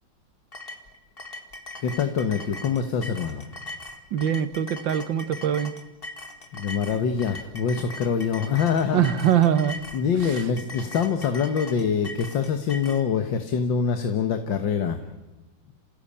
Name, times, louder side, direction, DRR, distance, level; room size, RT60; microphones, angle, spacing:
sound 1, 0.5-13.0, left 2 dB, 30° left, 2.2 m, -40 dB
voice 1, 1.8-3.5 6.5-9.1 9.9-15.0, left 6 dB, 80° left, 7 dB, 2.0 m, -25 dB
voice 2, 4.1-5.7 8.9-9.8 10.3-10.4, right 9 dB, 80° right, 12 dB, 1.9 m, -22 dB
29.0 x 16.0 x 8.6 m, 1.1 s
omnidirectional pair, 2.0 m